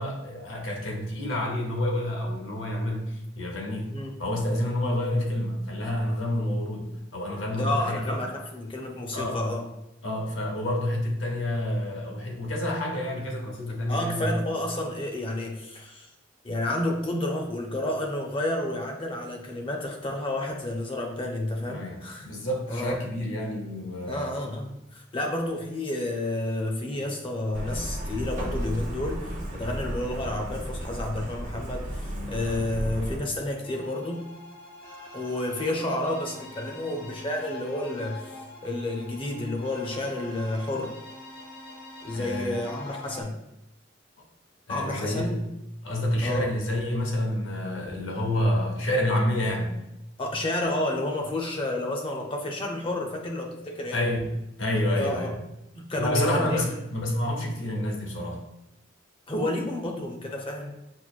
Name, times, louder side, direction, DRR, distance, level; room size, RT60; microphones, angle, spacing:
voice 1, 0.0-8.2 9.1-9.4 10.0-14.3 21.7-24.3 42.1-42.6 44.7-45.4 45.8-49.8 53.9-54.3 54.6-55.4 56.0-58.4, left 1 dB, 85° left, 0 dB, 0.9 m, -28 dB
voice 2, 7.5-9.6 13.9-16.1 16.4-22.3 22.7-23.0 24.1-34.3 35.1-38.3 38.6-40.9 42.0-43.4 44.7-45.5 46.2-46.5 50.2-54.0 54.9-55.3 55.8-56.7 59.3-60.7, left 1 dB, 25° left, 1 dB, 0.6 m, -30 dB
Truck, 27.5-33.2, equal, 40° right, 0.6 m, -33 dB
sound 1, 33.6-43.2, left 2 dB, 60° left, 0.9 m, -44 dB
6.1 x 2.0 x 2.4 m, 0.88 s
head